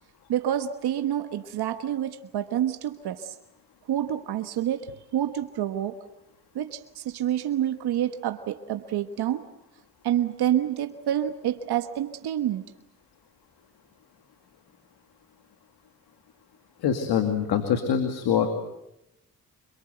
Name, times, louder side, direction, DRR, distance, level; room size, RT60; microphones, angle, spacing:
voice 1, 0.3-3.3 3.9-6.0 6.5-9.5 10.0-12.6, right 11 dB, 80° right, 9 dB, 1.2 m, -28 dB
voice 2, 16.8-18.5, left 8 dB, 80° left, 7 dB, 2.4 m, -24 dB
26.5 x 23.0 x 7.9 m, 0.88 s
supercardioid pair, 55°, 38 cm